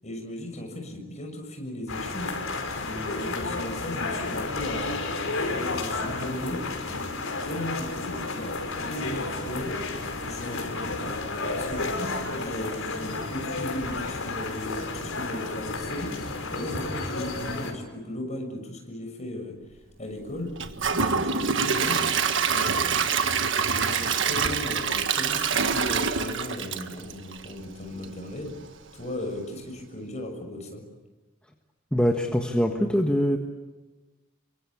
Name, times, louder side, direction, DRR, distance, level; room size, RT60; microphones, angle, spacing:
voice 1, 0.0-2.3 2.7-5.0 5.5-6.6 7.4-9.7 10.2-11.2 11.5-19.6 20.0-20.5 20.9-22.1 22.4-23.1 23.8-28.5 28.9-30.8, left 1 dB, 35° left, 3 dB, 6.8 m, -36 dB
sound 1, 1.9-17.7, left 3 dB, 70° left, 5.0 m, -32 dB
Gurgling / Toilet flush / Trickle dribble, 20.6-27.6 28.0-28.1 28.6-28.7, right 6 dB, 60° right, 1.6 m, -25 dB
voice 2, 31.9-33.4, equal, 5° left, 2 dB, 1.6 m, -23 dB
28.0 x 24.5 x 8.7 m, 1.2 s
head